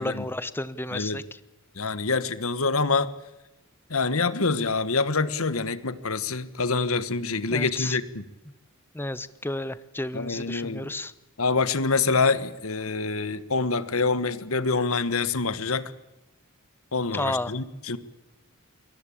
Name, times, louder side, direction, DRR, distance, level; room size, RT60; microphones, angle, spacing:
voice 1, 0.0-1.4 7.5-8.0 8.9-11.1 17.1-17.5, left 2 dB, 10° left, 15 dB, 0.8 m, -32 dB
voice 2, 1.8-3.1 3.9-8.2 10.1-10.9 11.4-15.9 16.9-18.0, left 4 dB, 75° left, 14 dB, 1.4 m, -26 dB
24.0 x 19.0 x 8.7 m, 0.99 s
head